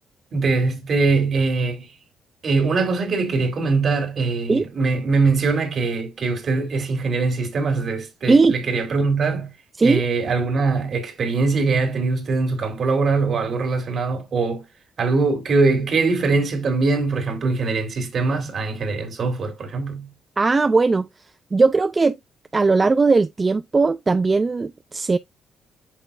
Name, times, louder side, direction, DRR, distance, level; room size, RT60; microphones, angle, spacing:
voice 1, 0.3-1.9 2.4-9.5 9.8-14.6 15.0-20.1, right 3 dB, 55° right, 3.1 m, -22 dB
voice 2, 20.4-21.1 21.5-22.2 22.5-25.2, right 3 dB, 30° right, 0.4 m, -18 dB
8.3 x 5.7 x 2.5 m
cardioid pair, 90°, 0 cm